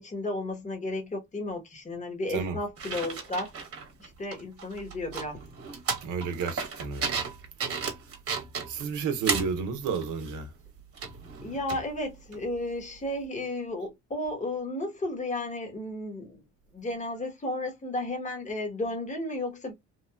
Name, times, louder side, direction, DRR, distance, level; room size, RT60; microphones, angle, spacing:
voice 1, 0.0-3.5 4.0-5.4 9.2-9.3 11.4-16.4 16.7-19.7, left 1 dB, 25° left, 1.0 m, -33 dB
sound 1, 2.8-4.1 4.3-9.6 9.9-10.3 11.0-11.9 12.3-12.4, right 5 dB, 50° right, 1.0 m, -34 dB
voice 2, 6.0-7.2 8.7-10.5, right 5 dB, 85° right, 0.7 m, -31 dB
3.1 x 2.1 x 2.2 m
cardioid pair, 90°, 30 cm